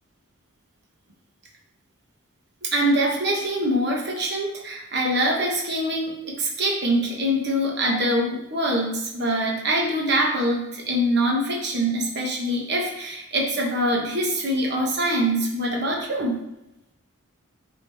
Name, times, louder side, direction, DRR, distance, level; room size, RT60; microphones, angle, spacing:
voice 1, 2.6-16.4, right 1 dB, 50° right, -1 dB, 1.2 m, -24 dB
8.3 x 3.8 x 3.5 m, 0.91 s
head